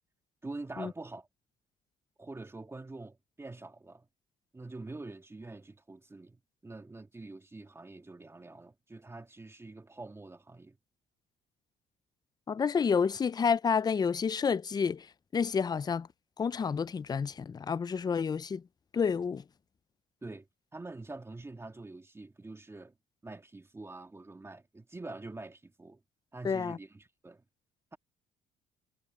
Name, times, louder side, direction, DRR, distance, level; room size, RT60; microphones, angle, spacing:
voice 1, 0.4-1.3 2.2-4.1 4.5-10.8 20.2-20.5 20.7-22.9 23.2-26.0 26.3-27.4, right 2 dB, 15° right, 2.4 m, -45 dB
voice 2, 12.5-15.1 15.3-16.1 16.4-18.6 18.9-19.4 26.4-26.8, left 6 dB, 25° left, 0.5 m, -29 dB
cardioid pair, 110°, 17 cm